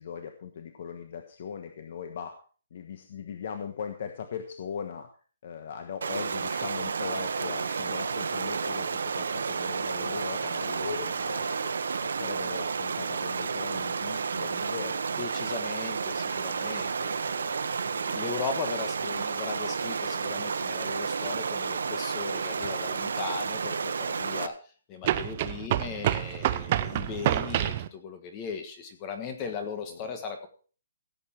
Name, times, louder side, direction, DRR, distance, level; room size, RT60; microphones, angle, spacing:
voice 1, 0.0-2.4 2.7-5.1 5.4-11.7 12.0-15.3 17.8-18.1 29.4-29.6 29.9-30.2, left 7 dB, 45° left, 6 dB, 1.2 m, -39 dB
Stream, 6.0-24.5, right 5 dB, 75° right, 1.0 m, -31 dB
sound 1, 7.4-7.7 8.0-8.3 8.6-8.9 10.0-10.3 10.6-10.9 11.3-11.5, left 2 dB, 70° left, 7.4 m, -43 dB
voice 2, 15.2-17.5 17.9-24.6 24.9-30.5, left 5 dB, 20° left, 6 dB, 1.5 m, -38 dB
sound 2, 22.6-22.7 25.0-27.9, right 12 dB, 30° right, 0.6 m, -28 dB
16.0 x 8.1 x 4.4 m, 0.39 s
hypercardioid pair, 175°, 0 cm